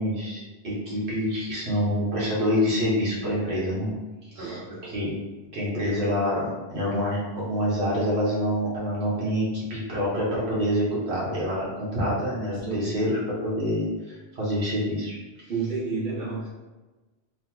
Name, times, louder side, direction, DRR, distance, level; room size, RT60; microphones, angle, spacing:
voice 1, 0.0-3.9 4.2-5.1 5.5-15.5, equal, 70° right, -7 dB, 1.5 m, -27 dB
voice 2, 4.3-5.0 12.6-12.9 15.5-16.5, right 4 dB, 45° right, -7 dB, 1.3 m, -31 dB
3.4 x 3.1 x 3.6 m, 1.2 s
omnidirectional pair, 1.2 m